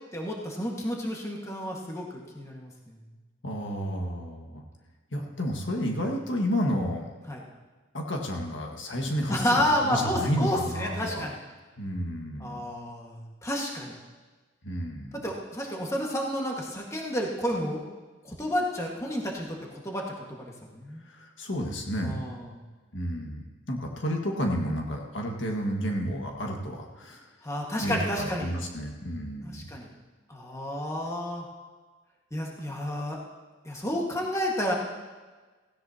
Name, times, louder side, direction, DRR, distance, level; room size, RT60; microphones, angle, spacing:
voice 1, 0.1-2.1 2.3-2.7 7.3-7.4 9.3-11.4 12.4-14.0 15.1-17.8 18.2-19.6 19.8-20.1 20.4-21.0 22.0-22.4 27.4-28.5 29.4-29.9 30.3-31.5 32.3-33.2 33.6-34.7, equal, 15° left, -1 dB, 1.7 m, -30 dB
voice 2, 3.4-4.6 5.1-7.1 7.9-11.3 11.8-12.6 14.6-15.2 21.0-22.2 22.9-27.3 27.8-29.7, equal, 70° left, 1 dB, 1.8 m, -31 dB
17.0 x 16.0 x 2.9 m, 1.3 s
head